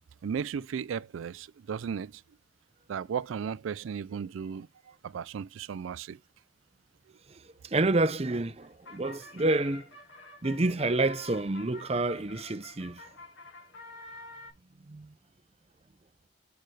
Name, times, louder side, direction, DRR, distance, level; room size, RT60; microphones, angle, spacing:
voice 1, 0.2-2.2 2.9-6.2, right 7 dB, 85° right, 0.4 m, -35 dB
voice 2, 7.6-9.9 10.4-13.0 14.9-15.1, right 2 dB, 30° right, 0.6 m, -28 dB
sound 1, 8.6-14.5, left 2 dB, 80° left, 5.9 m, -48 dB
7.8 x 6.6 x 3.2 m
head